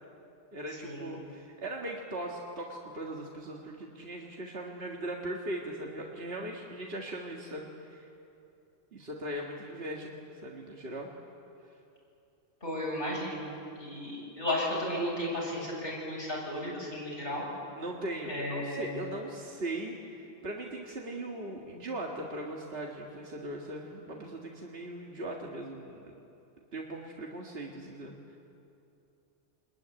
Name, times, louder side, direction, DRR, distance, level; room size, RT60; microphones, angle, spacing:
voice 1, 0.5-8.1 8.9-11.1 17.8-26.1 26.7-28.1, right 1 dB, 60° right, -1 dB, 2.1 m, -39 dB
voice 2, 12.6-17.4 18.3-19.0, left 1 dB, 55° left, -5 dB, 7.8 m, -34 dB
24.5 x 20.5 x 9.9 m, 2.7 s
omnidirectional pair, 1.2 m